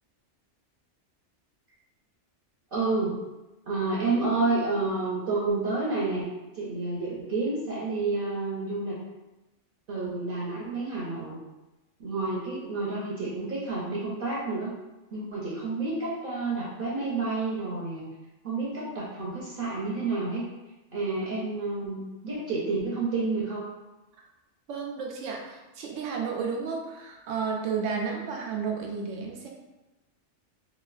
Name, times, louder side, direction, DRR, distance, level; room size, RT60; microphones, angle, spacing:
voice 1, 2.7-3.2 3.7-6.3 6.5-9.0 9.9-11.4 12.0-14.7 15.1-18.0 18.4-20.5 20.9-23.7, right 3 dB, 55° right, -6 dB, 0.7 m, -29 dB
voice 2, 24.7-29.5, right 5 dB, 85° right, 0 dB, 0.9 m, -32 dB
3.0 x 2.4 x 2.4 m, 1.0 s
omnidirectional pair, 1.2 m